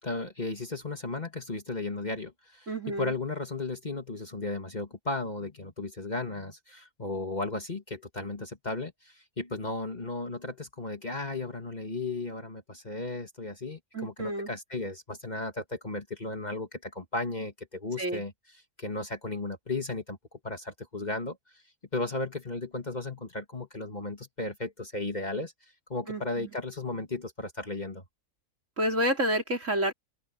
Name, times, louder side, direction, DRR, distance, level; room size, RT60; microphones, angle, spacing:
voice 1, 0.0-18.3 18.8-20.2 20.4-21.4 21.9-25.5 25.9-28.0, left 2 dB, 30° left, 2.1 m, -35 dB
voice 2, 2.7-3.1 13.9-14.5 18.0-18.2 26.1-26.5 28.8-29.9, equal, 60° right, 5.1 m, -29 dB
open air
omnidirectional pair, 1.5 m